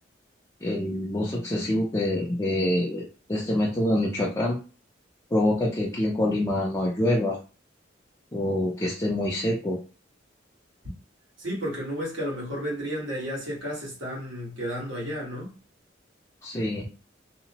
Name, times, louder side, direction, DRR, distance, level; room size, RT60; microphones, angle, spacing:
voice 1, 0.6-3.0 3.3-4.6 5.3-7.4 8.3-9.8 16.4-16.9, left 1 dB, 15° left, 0.4 m, -25 dB
voice 2, 11.4-15.5, equal, 75° right, 1.4 m, -32 dB
2.8 x 2.0 x 2.8 m
head